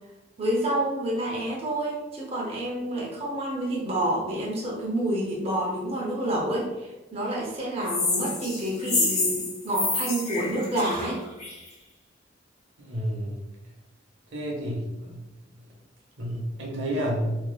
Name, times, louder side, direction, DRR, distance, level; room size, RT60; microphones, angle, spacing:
voice 1, 0.4-11.2, right 1 dB, 35° right, -4 dB, 0.6 m, -28 dB
sound 1, 7.9-11.7, left 3 dB, 40° left, 0.8 m, -28 dB
voice 2, 12.8-13.5 14.3-15.2 16.2-17.4, equal, 80° right, -2 dB, 0.8 m, -30 dB
3.2 x 2.8 x 2.2 m, 1.1 s
head